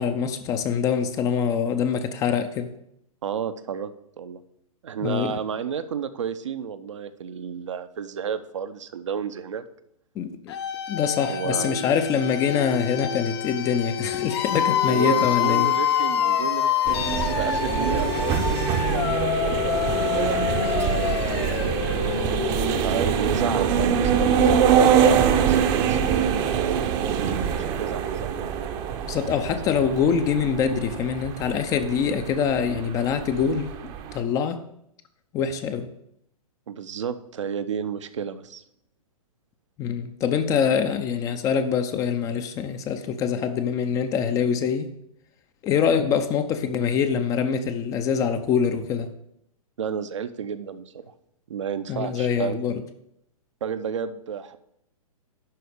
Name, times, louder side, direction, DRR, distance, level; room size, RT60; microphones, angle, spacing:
voice 1, 0.0-2.7 5.0-5.4 10.2-10.5 10.9-15.7 29.1-34.6 35.3-35.9 39.8-44.9 45.6-49.1 51.9-52.8, left 7 dB, 15° left, 9 dB, 0.5 m, -24 dB
voice 2, 3.2-3.9 4.2-4.4 4.8-9.7 11.3-11.8 14.9-21.1 22.8-26.9 27.5-28.5 36.7-38.6 49.8-51.0 51.5-52.6 53.6-54.6, right 7 dB, 55° right, 10 dB, 0.7 m, -32 dB
sound 1, 10.5-23.3, left 9 dB, 45° left, 0.9 m, -26 dB
sound 2, 16.9-34.2, right 7 dB, 25° right, 0.7 m, -24 dB
11.5 x 4.2 x 6.6 m, 0.76 s
figure-of-eight pair, 115°, 19 cm